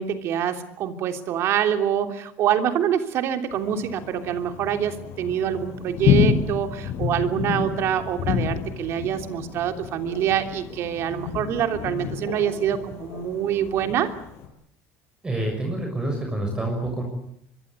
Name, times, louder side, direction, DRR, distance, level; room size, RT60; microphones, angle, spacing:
voice 1, 0.0-14.1, right 9 dB, 55° right, 7 dB, 3.2 m, -25 dB
Thunder, 3.5-14.5, left 8 dB, 60° left, 5.7 m, -29 dB
voice 2, 15.2-17.0, right 1 dB, 15° right, 2 dB, 6.4 m, -27 dB
24.5 x 23.0 x 8.4 m, 0.71 s
cardioid pair, 135°, 5 cm